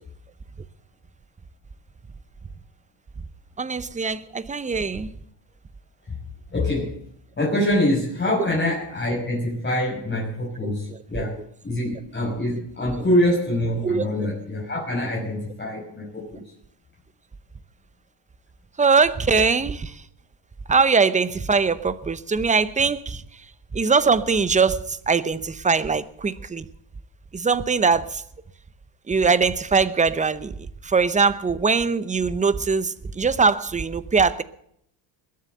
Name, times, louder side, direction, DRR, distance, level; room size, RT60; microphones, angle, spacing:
voice 1, 3.6-5.1 10.6-10.7 13.8-14.0 18.8-19.9 20.7-23.2 23.7-26.6 27.3-28.1 29.1-30.5 30.9-34.4, right 5 dB, 15° right, 16 dB, 0.7 m, -21 dB
voice 2, 6.5-6.9 7.4-11.4 11.6-16.4, left 1 dB, 20° left, -4 dB, 5.8 m, -25 dB
21.5 x 7.6 x 7.9 m, 0.70 s
cardioid pair, 125°, 49 cm